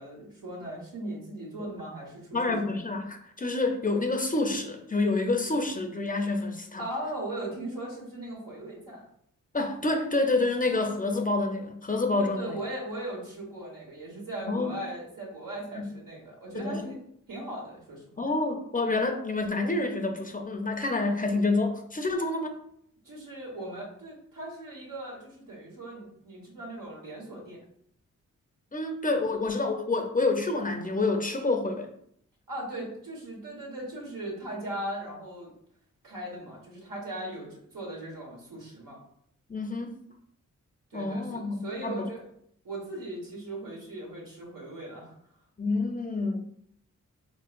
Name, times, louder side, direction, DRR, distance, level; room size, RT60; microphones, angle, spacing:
voice 1, 0.0-2.6 6.8-9.0 12.2-17.0 17.3-18.2 23.0-27.6 32.5-35.5 36.0-39.0 40.9-42.3 42.6-45.2, right 1 dB, 85° right, -3 dB, 1.4 m, -38 dB
voice 2, 2.3-6.8 9.5-12.6 14.5-14.7 15.8-15.9 16.5-16.9 18.2-22.6 28.7-31.9 39.5-39.9 40.9-42.1 45.6-46.4, left 2 dB, 25° left, 4 dB, 0.6 m, -28 dB
4.1 x 3.0 x 2.4 m, 0.69 s
cardioid pair, 60°, 32 cm